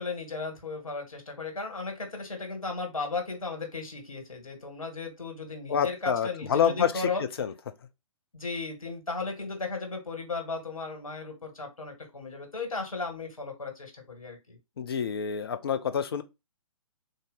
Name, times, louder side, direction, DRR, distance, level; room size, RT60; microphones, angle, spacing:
voice 1, 0.0-7.2 8.3-14.6, left 3 dB, 70° left, 1.6 m, -35 dB
voice 2, 5.7-6.9 7.4-7.5 14.8-16.2, left 8 dB, 45° left, 0.5 m, -27 dB
3.6 x 2.6 x 3.9 m
figure-of-eight pair, 130°, 18 cm